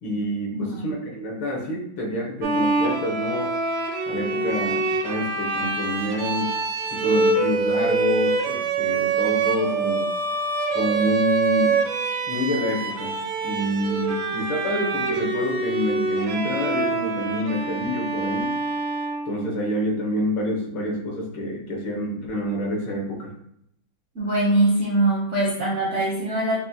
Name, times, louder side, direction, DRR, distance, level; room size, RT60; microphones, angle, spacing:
voice 1, 0.0-3.5 4.1-6.5 6.9-10.1 10.7-11.9 12.3-13.1 13.4-18.5 19.3-23.3, left 1 dB, 75° left, -1 dB, 1.8 m, -27 dB
Bowed string instrument, 2.4-19.8, right 3 dB, 75° right, 1.3 m, -25 dB
voice 2, 24.1-26.6, right 1 dB, 60° right, -5 dB, 0.8 m, -22 dB
5.9 x 2.2 x 2.7 m, 0.76 s
omnidirectional pair, 2.2 m